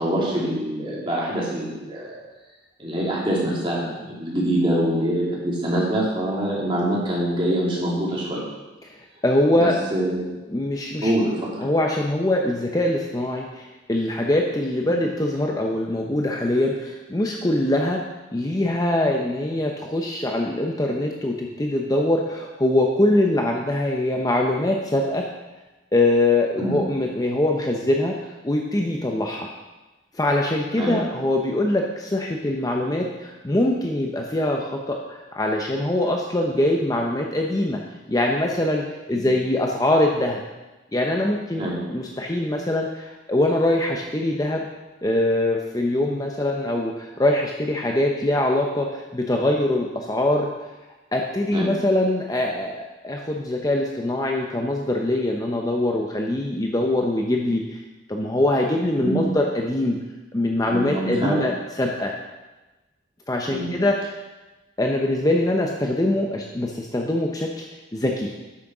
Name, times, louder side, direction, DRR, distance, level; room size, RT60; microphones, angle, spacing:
voice 1, 0.0-2.2 2.8-8.4 9.5-10.4 11.0-11.5 14.8-14.9 26.6-26.8 30.8-31.0 39.1-39.3 41.6-41.8 51.5-51.7 59.0-59.3 60.7-61.4 63.5-63.7, right 1 dB, 30° right, -5 dB, 2.7 m, -25 dB
voice 2, 9.2-9.8 10.5-11.1 11.6-18.0 18.3-25.2 25.9-28.1 28.4-29.5 30.2-37.8 38.1-40.4 40.9-44.7 45.0-50.5 51.1-57.8 58.1-60.0 60.3-62.1 63.3-64.0 64.8-67.6 67.9-68.3, left 1 dB, 20° left, 1 dB, 0.6 m, -23 dB
8.5 x 6.3 x 6.0 m, 1.1 s
head